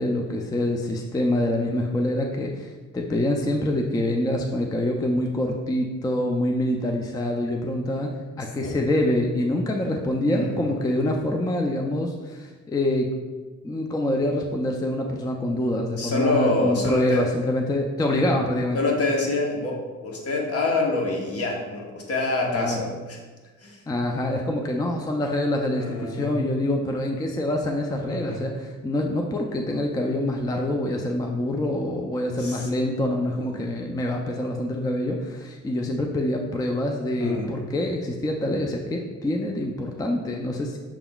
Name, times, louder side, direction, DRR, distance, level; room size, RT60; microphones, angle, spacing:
voice 1, 0.0-13.1 13.6-18.8 22.5-22.9 23.9-40.8, left 1 dB, 15° left, 2 dB, 0.4 m, -25 dB
voice 2, 10.3-10.7 16.0-17.3 18.1-18.2 18.7-23.2 23.6-23.8 25.8-26.4 28.1-28.5 32.4-32.7 33.5-33.6 37.2-37.6, left 2 dB, 50° left, 0 dB, 1.0 m, -26 dB
5.9 x 3.6 x 2.3 m, 1.3 s
cardioid pair, 90°, 30 cm